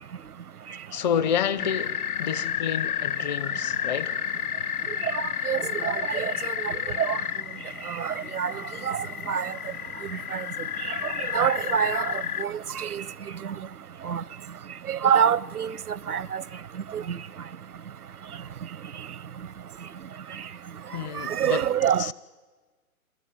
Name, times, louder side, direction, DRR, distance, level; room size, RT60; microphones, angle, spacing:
voice 1, 0.9-4.2 20.9-21.6 22.0-22.1, left 9 dB, 30° left, 0.8 m, -29 dB
sound 1, 1.6-12.5, left 8 dB, 75° left, 0.7 m, -31 dB
voice 2, 5.5-6.3 6.6-6.7 7.0-7.2 8.0-8.5 8.9-9.0 9.3-9.5 10.3-10.4 11.3-12.0 12.4-13.0 14.1-14.2 14.9-15.7 16.1-16.4 16.9-17.0 21.2-22.0, right 8 dB, 80° right, 0.8 m, -25 dB
28.0 x 21.0 x 9.3 m
figure-of-eight pair, 130°, 44 cm